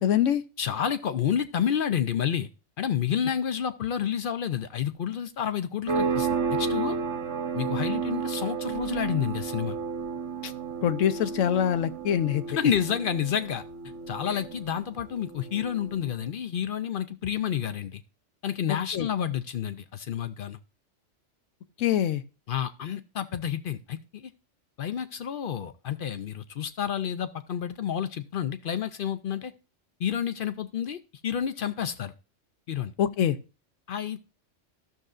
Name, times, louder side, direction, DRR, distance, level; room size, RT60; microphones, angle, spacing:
voice 1, 0.0-0.4 10.4-10.5 10.8-12.4 18.7-19.1 21.8-22.2 33.0-33.4, left 10 dB, 85° left, 1.0 m, -24 dB
voice 2, 0.6-2.5 2.8-7.0 7.5-9.8 12.6-13.6 14.1-18.0 18.4-20.6 22.5-24.3 24.8-29.5 30.0-32.1 32.7-32.9 33.9-34.3, left 9 dB, 60° left, 0.6 m, -29 dB
sound 1, 5.9-16.2, right 5 dB, 70° right, 1.4 m, -32 dB
13.5 x 6.5 x 2.4 m
omnidirectional pair, 1.3 m